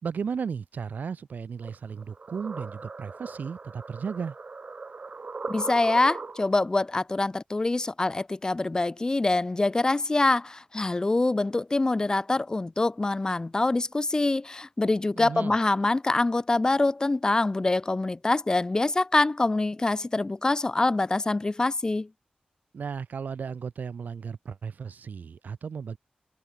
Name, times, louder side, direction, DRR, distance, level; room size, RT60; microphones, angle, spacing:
voice 1, 0.0-4.4 15.1-15.5 22.7-26.0, right 6 dB, 75° right, 1.6 m, -35 dB
sound 1, 1.6-6.7, right 4 dB, 45° right, 1.4 m, -39 dB
voice 2, 5.5-22.1, left 2 dB, 25° left, 0.5 m, -25 dB
wide cardioid pair, 90°, 3 cm